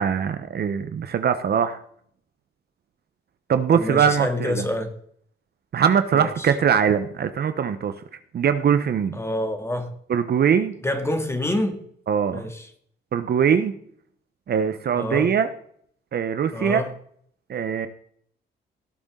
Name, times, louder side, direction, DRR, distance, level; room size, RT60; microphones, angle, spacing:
voice 1, 0.0-1.8 3.5-4.6 5.7-7.9 8.3-9.2 10.1-10.7 12.1-12.5 13.1-13.7 14.5-15.5 16.1-16.8 17.5-17.9, right 7 dB, 55° right, 10 dB, 1.0 m, -22 dB
voice 2, 3.7-4.9 6.1-6.5 9.1-9.9 10.8-11.8 12.3-12.7 14.9-15.3 16.5-16.9, left 1 dB, 15° left, 6 dB, 2.3 m, -27 dB
18.0 x 7.0 x 3.9 m, 0.62 s
cardioid pair, 90°, 20 cm